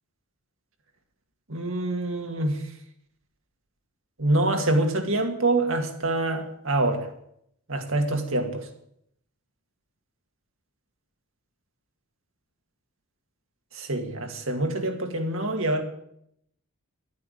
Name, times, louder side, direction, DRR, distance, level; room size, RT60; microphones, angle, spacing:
voice 1, 1.5-2.6 4.2-7.1 7.7-8.7 13.8-15.8, right 2 dB, 65° right, 4 dB, 2.1 m, -25 dB
12.0 x 9.5 x 8.1 m, 0.72 s
head